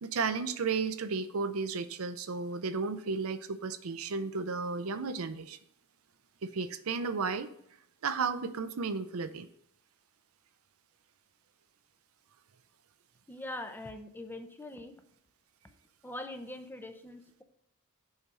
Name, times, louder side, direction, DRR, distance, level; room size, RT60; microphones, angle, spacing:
voice 1, 0.0-5.6 6.4-7.5 8.0-9.5, right 4 dB, 75° right, 12 dB, 0.6 m, -33 dB
voice 2, 13.3-14.9 15.6-15.7 16.0-17.4, left 1 dB, 10° left, 7 dB, 0.7 m, -42 dB
7.1 x 5.0 x 5.5 m, 0.72 s
head